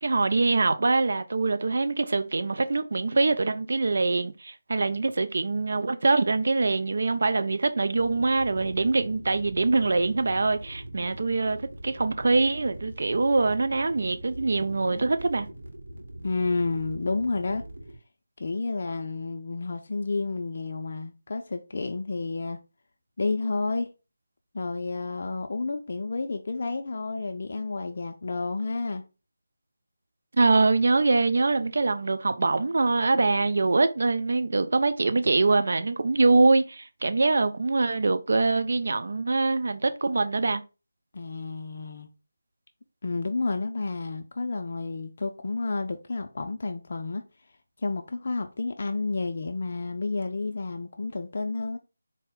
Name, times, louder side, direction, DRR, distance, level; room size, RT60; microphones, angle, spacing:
voice 1, 0.0-15.5 30.4-40.6, right 3 dB, 60° right, 0.4 m, -24 dB
sound 1, 8.0-18.0, right 1 dB, 75° right, 1.0 m, -42 dB
voice 2, 16.2-17.6 18.4-22.6 23.2-23.9 24.5-29.0 41.1-42.1 43.0-47.2 47.8-51.8, left 3 dB, 50° left, 0.4 m, -30 dB
4.1 x 2.1 x 3.5 m
figure-of-eight pair, 160°, 0 cm